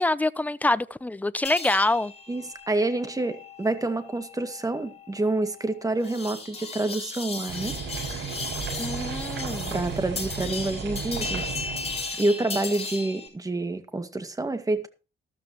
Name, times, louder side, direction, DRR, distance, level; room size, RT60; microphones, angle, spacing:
voice 1, 0.0-2.1 8.8-9.8 12.1-12.2, left 2 dB, 10° left, 0.7 m, -25 dB
sound 1, 1.4-13.3, left 4 dB, 30° left, 6.9 m, -37 dB
voice 2, 2.3-7.8 9.7-11.6 12.2-14.9, right 2 dB, 15° right, 2.0 m, -28 dB
sound 2, 7.5-12.1, right 6 dB, 70° right, 7.3 m, -34 dB
13.5 x 13.0 x 3.1 m
cardioid pair, 90°, 20 cm